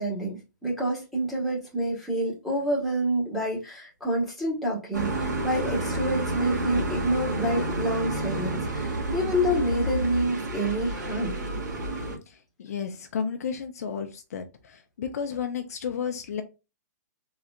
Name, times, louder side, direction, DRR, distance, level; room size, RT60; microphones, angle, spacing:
voice 1, 0.0-11.3, right 1 dB, ahead, -5 dB, 1.3 m, -28 dB
sound 1, 4.9-12.2, right 1 dB, 85° right, 1.8 m, -30 dB
voice 2, 12.3-16.4, left 7 dB, 55° left, 6 dB, 0.7 m, -33 dB
3.7 x 3.2 x 2.4 m, 0.28 s
hypercardioid pair, 165°, 10 cm